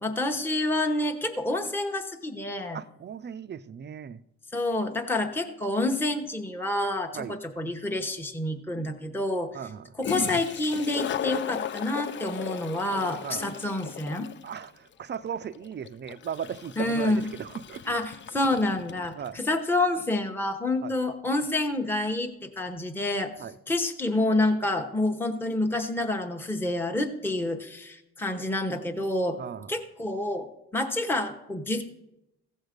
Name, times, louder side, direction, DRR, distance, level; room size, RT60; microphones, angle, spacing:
voice 1, 0.0-2.8 4.5-9.5 10.0-14.3 16.8-17.2 17.9-23.3 23.7-29.4 29.7-30.5 30.7-31.8, left 2 dB, 5° left, 1.0 m, -28 dB
voice 2, 2.7-4.2 7.1-7.4 9.5-9.9 13.2-13.5 14.4-18.0 19.1-19.4 20.8-20.9 23.4-23.6 29.4-29.7, right 8 dB, 35° right, 0.5 m, -37 dB
Toilet flush, 8.0-8.1 9.7-9.8 10.0-19.4, left 9 dB, 40° left, 0.4 m, -37 dB
15.5 x 6.4 x 5.1 m
cardioid pair, 90°, 30 cm